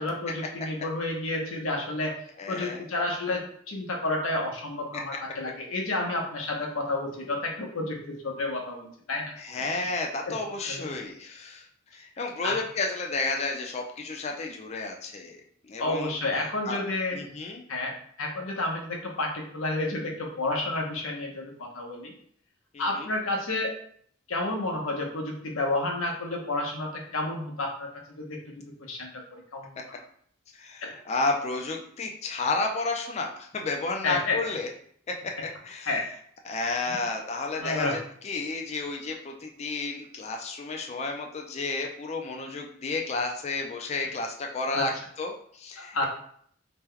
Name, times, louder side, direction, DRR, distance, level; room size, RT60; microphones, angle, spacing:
voice 1, 0.0-2.1 2.5-9.3 9.6-9.9 10.3-10.4 10.6-10.9 12.4-12.6 15.8-17.2 17.7-17.9 18.2-22.1 22.8-23.7 24.3-29.8 30.8-30.9 34.0-34.4 35.9-36.0 36.9-37.0 37.6-37.9 44.7-44.9 45.8-46.1, left 2 dB, 85° left, 0 dB, 0.8 m, -30 dB
voice 2, 2.4-2.9 9.4-11.7 11.9-15.4 15.6-16.1 16.6-16.8 17.1-17.6 22.7-23.1 30.6-34.7 35.1-35.3 35.6-35.9 36.4-44.9 45.2-46.1, left 3 dB, 30° left, 2 dB, 0.4 m, -32 dB
2.9 x 2.2 x 3.6 m, 0.62 s
head